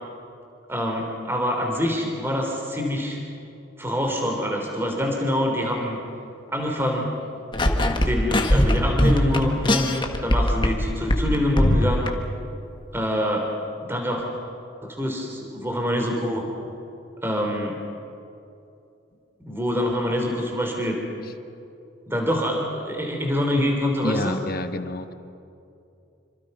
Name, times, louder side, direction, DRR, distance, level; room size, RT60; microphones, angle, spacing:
voice 1, 0.7-3.2 3.8-6.0 6.5-7.1 7.7-12.1 12.9-13.5 13.8-14.2 14.8-16.4 17.2-17.8 19.4-21.0 22.1-24.4, equal, 10° right, 1 dB, 3.3 m, -25 dB
sound 1, 7.5-10.8 11.1-12.1, left 1 dB, 25° left, 1.5 m, -20 dB
voice 2, 24.0-25.1, left 2 dB, 50° left, 8 dB, 1.3 m, -28 dB
27.5 x 26.0 x 5.5 m, 2.6 s
head